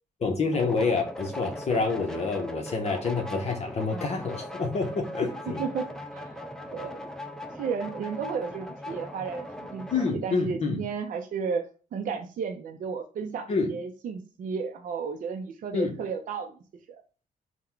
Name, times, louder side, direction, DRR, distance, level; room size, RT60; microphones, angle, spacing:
voice 1, 0.2-5.6 9.9-10.8 13.5-13.7 15.7-15.9, left 4 dB, 45° left, 3 dB, 0.7 m, -27 dB
sound 1, 0.5-10.2, left 1 dB, 5° left, 0.4 m, -39 dB
voice 2, 5.6-6.2 6.7-7.0 7.5-16.5 16.9-17.0, right 6 dB, 60° right, 4 dB, 0.4 m, -33 dB
3.8 x 2.1 x 4.4 m, 0.37 s
cardioid pair, 110°, 15 cm